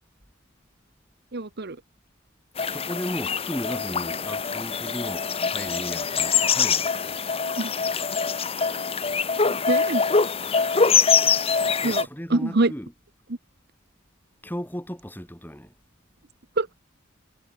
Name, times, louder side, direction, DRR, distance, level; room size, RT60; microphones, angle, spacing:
voice 1, 1.3-1.8 7.6-7.7 9.4-10.0 11.8-12.7 16.6-16.7, right 2 dB, 50° right, 1.0 m, -25 dB
sound 1, 2.6-12.0, left 5 dB, 25° left, 1.0 m, -24 dB
voice 2, 2.7-7.2 11.8-12.9 14.4-15.7, equal, 10° left, 7.1 m, -35 dB
head